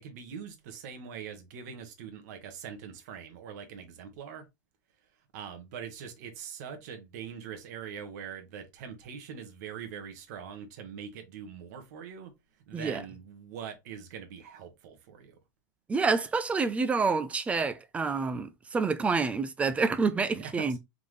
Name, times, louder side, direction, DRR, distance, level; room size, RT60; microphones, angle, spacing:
voice 1, 0.0-4.4 5.3-12.3 12.7-15.4 20.4-20.8, right 7 dB, 65° right, 1.3 m, -43 dB
voice 2, 12.7-13.0 15.9-20.8, right 4 dB, 15° right, 0.4 m, -28 dB
3.8 x 3.5 x 3.2 m
supercardioid pair, 140°, 10 cm